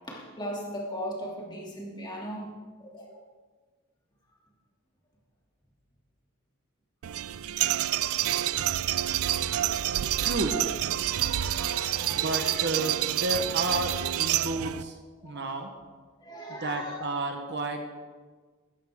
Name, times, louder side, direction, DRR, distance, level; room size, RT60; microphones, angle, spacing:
voice 1, 0.1-2.5 2.8-3.2 9.0-10.3 11.0-12.6 14.5-14.6 15.2-15.6 16.2-17.0, equal, 20° left, -3 dB, 2.8 m, -39 dB
sound 1, 7.0-14.8, right 12 dB, 70° right, 0.4 m, -28 dB
voice 2, 10.2-10.6 12.1-15.0 15.2-15.7 16.5-17.8, right 2 dB, 50° right, 5 dB, 1.2 m, -31 dB
15.5 x 14.0 x 3.7 m, 1.4 s
head